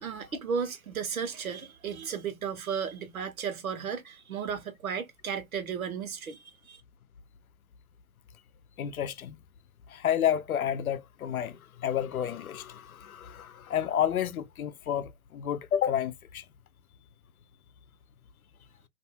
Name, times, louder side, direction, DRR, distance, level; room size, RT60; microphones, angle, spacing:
voice 1, 0.0-6.8, right 6 dB, 75° right, 1.0 m, -34 dB
voice 2, 8.8-9.4 9.9-16.4, left 9 dB, 80° left, 0.6 m, -30 dB
2.6 x 2.3 x 2.7 m
hypercardioid pair, 130°, 42 cm